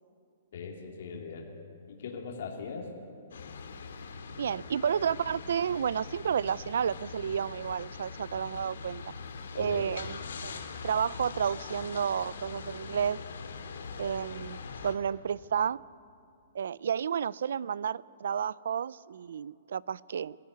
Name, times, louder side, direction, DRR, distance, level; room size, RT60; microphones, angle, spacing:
voice 1, 0.5-1.5 1.9-2.9 9.5-9.9, left 5 dB, 55° left, 0 dB, 2.9 m, -40 dB
sound 1, 3.3-15.0, left 5 dB, 75° left, 2.4 m, -42 dB
voice 2, 4.4-9.0 9.6-13.2 14.0-15.8 16.5-20.4, right 8 dB, 65° right, 22 dB, 0.4 m, -31 dB
22.0 x 15.0 x 9.6 m, 2.4 s
hypercardioid pair, 170°, 0 cm